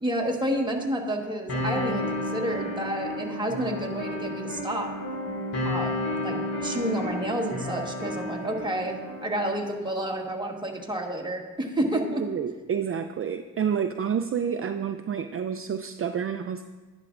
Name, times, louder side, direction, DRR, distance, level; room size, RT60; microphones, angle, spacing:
voice 1, 0.0-4.9 5.6-12.2, right 1 dB, 15° right, 0 dB, 1.4 m, -30 dB
sound 1, 1.5-9.5, left 1 dB, 80° left, 3.1 m, -32 dB
voice 2, 12.2-16.6, right 7 dB, 45° right, 7 dB, 0.4 m, -29 dB
11.0 x 10.5 x 2.5 m, 1.3 s
cardioid pair, 85°, 32 cm